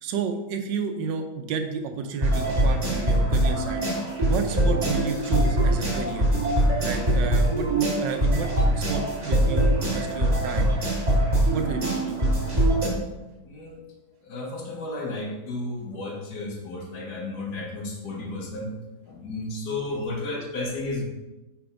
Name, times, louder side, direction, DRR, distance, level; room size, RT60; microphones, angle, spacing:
voice 1, 0.0-3.8 4.3-6.3 6.8-8.5 8.8-10.7 11.5-12.1, right 5 dB, 85° right, 6 dB, 1.3 m, -31 dB
sound 1, 2.2-12.9, right 1 dB, 20° right, 2.0 m, -23 dB
voice 2, 13.5-13.8 14.3-18.7 19.1-21.0, left 2 dB, 65° left, 1 dB, 1.5 m, -33 dB
5.8 x 3.5 x 4.9 m, 1.1 s
omnidirectional pair, 1.9 m